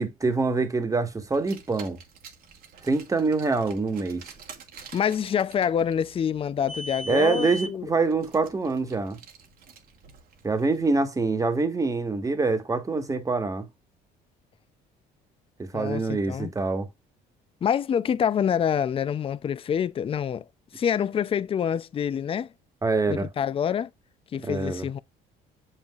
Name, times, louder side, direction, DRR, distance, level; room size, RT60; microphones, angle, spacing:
voice 1, 0.0-2.0 2.8-4.2 7.1-9.2 10.4-13.7 15.6-16.9 22.8-23.3 24.4-24.9, right 3 dB, 20° right, 1.4 m, -25 dB
Car, 1.3-10.8, right 1 dB, 60° right, 1.5 m, -43 dB
voice 2, 4.9-7.9 15.7-16.5 17.6-20.4 20.7-22.5 23.1-23.9 24.3-25.0, left 8 dB, 35° left, 0.5 m, -26 dB
7.0 x 5.7 x 2.4 m
cardioid pair, 110°, 17 cm